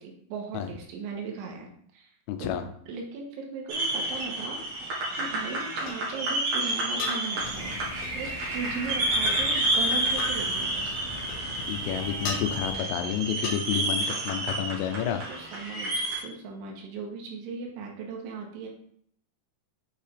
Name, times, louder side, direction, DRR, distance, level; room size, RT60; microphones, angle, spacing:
voice 1, 0.0-2.1 2.4-2.6 2.9-4.6 5.1-7.7 8.1-11.0 14.7-18.7, right 4 dB, 80° right, 0 dB, 3.5 m, -38 dB
voice 2, 2.3-2.7 11.7-15.2, left 9 dB, 90° left, 7 dB, 3.2 m, -30 dB
sound 1, 3.7-16.2, right 1 dB, 55° right, 2.0 m, -30 dB
sound 2, 4.6-4.7 5.9-6.0 7.0-7.2 8.0-8.2 9.2-9.4 10.2-10.4 11.3-11.8 12.2-12.4 13.4-13.6, left 4 dB, 70° left, 2.6 m, -34 dB
sound 3, 7.4-12.7, left 3 dB, 40° left, 0.9 m, -42 dB
8.0 x 4.6 x 3.5 m, 0.66 s
omnidirectional pair, 5.5 m